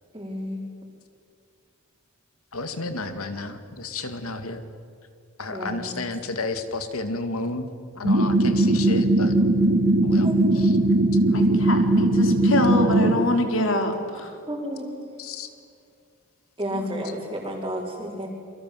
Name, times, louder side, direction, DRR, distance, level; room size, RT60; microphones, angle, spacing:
voice 1, 0.1-0.6 5.5-6.0 10.2-10.6 14.5-14.9 16.6-18.3, equal, 20° right, -6 dB, 4.6 m, -31 dB
voice 2, 2.5-4.6 5.4-7.7 8.0-9.4 10.0-10.3 15.2-15.5, left 3 dB, 80° left, 9 dB, 2.4 m, -31 dB
sound 1, 8.0-13.2, right 1 dB, 60° right, 3.4 m, -19 dB
voice 3, 11.3-14.3 16.7-17.1, left 2 dB, 60° left, 5 dB, 3.5 m, -25 dB
29.5 x 24.0 x 7.8 m, 2.3 s
head